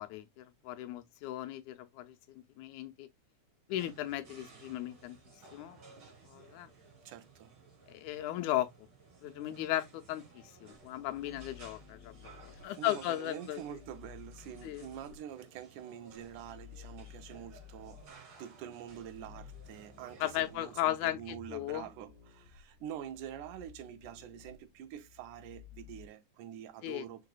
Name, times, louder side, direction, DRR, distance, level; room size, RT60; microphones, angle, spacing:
voice 1, 0.0-3.1 3.7-5.2 5.5-5.8 6.3-6.7 7.9-8.7 9.2-12.1 12.4-13.6 14.6-14.8 20.2-21.9 26.8-27.0, left 14 dB, 80° left, 2.0 m, -36 dB
sound 1, 3.7-20.8, right 4 dB, 45° right, 2.4 m, -57 dB
voice 2, 7.1-7.6 12.8-27.3, right 10 dB, 90° right, 2.2 m, -46 dB
sound 2, 10.7-12.6 13.6-15.2 16.1-18.1 18.9-26.1, left 10 dB, 50° left, 1.2 m, -55 dB
4.9 x 4.7 x 2.2 m
omnidirectional pair, 3.5 m